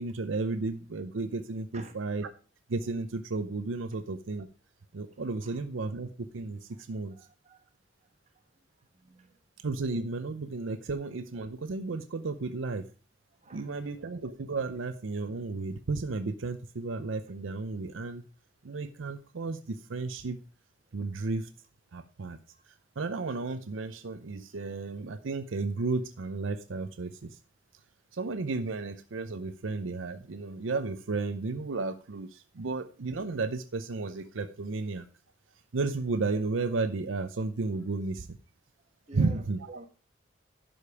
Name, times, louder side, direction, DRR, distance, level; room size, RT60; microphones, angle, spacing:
voice 1, 0.0-2.3 2.7-4.5 4.9-7.2 9.6-12.9 13.5-18.2 18.6-20.4 20.9-21.5 21.9-22.4 23.0-27.4 28.1-35.1 35.7-38.3 39.1-39.6, right 3 dB, 80° right, 11 dB, 0.6 m, -33 dB
voice 2, 7.1-7.7 8.3-8.4 8.9-9.4 13.4-14.0 22.5-22.6 39.1-39.9, right 2 dB, 35° right, 5 dB, 1.4 m, -49 dB
11.0 x 5.2 x 4.8 m, 0.34 s
head